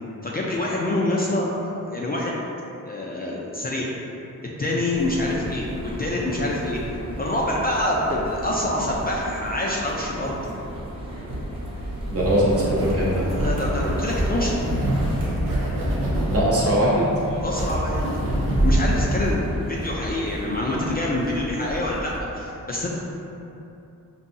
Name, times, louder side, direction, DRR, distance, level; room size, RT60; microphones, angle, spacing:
voice 1, 0.2-1.5 1.9-2.4 2.8-3.9 4.6-6.8 7.2-10.3 13.3-14.6 17.4-18.0 18.6-23.0, left 1 dB, 30° left, -4 dB, 0.4 m, -26 dB
sound 1, 4.9-22.2, right 1 dB, 15° right, 0.7 m, -36 dB
sound 2, 11.3-19.3, right 1 dB, 90° right, 0.8 m, -25 dB
voice 2, 12.1-13.2 16.3-17.1, equal, 45° right, -6 dB, 0.9 m, -21 dB
5.3 x 2.7 x 2.6 m, 2.8 s
wide cardioid pair, 130°, 33 cm